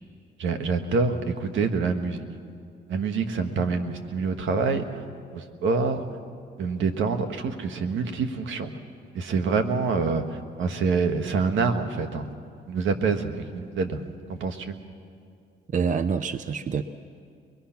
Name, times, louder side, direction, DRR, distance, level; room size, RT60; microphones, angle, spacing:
voice 1, 0.4-2.2 2.9-5.0 5.3-6.0 6.6-8.7 9.1-12.3 12.7-14.0 14.3-14.7, right 4 dB, 75° right, 6 dB, 1.6 m, -26 dB
voice 2, 15.7-16.8, right 6 dB, 40° right, 11 dB, 0.7 m, -26 dB
24.0 x 21.5 x 5.9 m, 2.3 s
cardioid pair, 90°, 20 cm